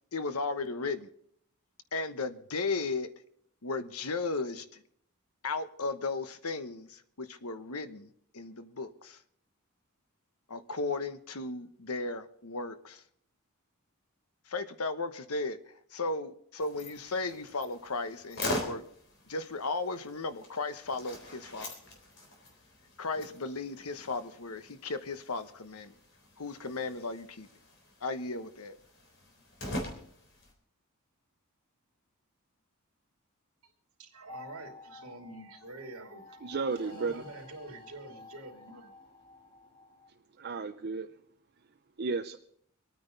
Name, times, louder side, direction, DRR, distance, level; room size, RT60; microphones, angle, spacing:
voice 1, 0.1-1.1 1.9-3.1 3.6-4.8 5.4-9.2 10.5-13.0 14.5-15.6 15.9-18.8 19.3-21.7 23.0-25.9 26.4-27.5 28.0-28.8, left 3 dB, 90° left, 10 dB, 1.1 m, -35 dB
sound 1, 16.6-30.5, left 1 dB, 60° left, 3.7 m, -43 dB
voice 2, 34.0-36.5 36.8-38.9, right 2 dB, 70° right, 2 dB, 3.0 m, -47 dB
sound 2, 34.3-40.1, left 3 dB, 20° left, 2.0 m, -52 dB
voice 3, 36.4-37.2 40.3-41.2 41.6-42.4, right 4 dB, 50° right, 5 dB, 0.6 m, -34 dB
25.5 x 9.5 x 4.0 m, 0.67 s
head